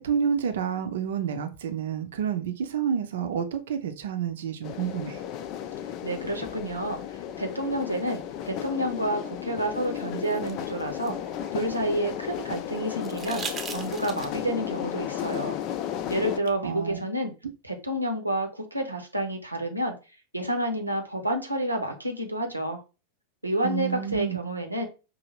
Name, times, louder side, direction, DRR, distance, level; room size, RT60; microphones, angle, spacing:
voice 1, 0.0-5.2 16.6-17.0 23.6-24.4, right 8 dB, 60° right, 0.7 m, -29 dB
sound 1, 4.6-16.4, left 10 dB, 40° left, 0.4 m, -34 dB
voice 2, 6.0-7.0 7.4-11.1 11.5-15.6 16.1-17.3 17.6-19.9 20.3-22.8 23.4-24.9, right 1 dB, 85° right, 0.9 m, -29 dB
sound 2, 9.8-12.1 13.0-14.5 16.2-16.3, right 5 dB, 20° right, 0.8 m, -40 dB
5.3 x 2.7 x 3.0 m
figure-of-eight pair, 90°, 0 cm